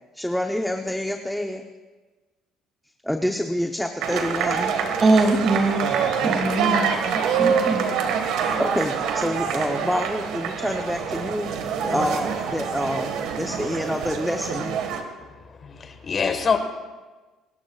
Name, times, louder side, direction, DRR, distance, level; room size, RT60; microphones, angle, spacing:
voice 1, 0.1-1.6 3.0-4.8 8.6-14.8, left 1 dB, ahead, 4 dB, 0.9 m, -27 dB
sound 1, 4.0-15.0, right 6 dB, 75° right, 1.7 m, -26 dB
voice 2, 5.0-5.8 6.2-6.9 7.1-7.9, right 2 dB, 35° right, 5 dB, 2.3 m, -21 dB
voice 3, 15.6-16.6, left 5 dB, 40° left, 7 dB, 1.6 m, -24 dB
28.5 x 12.5 x 2.4 m, 1.2 s
cardioid pair, 100°, 0 cm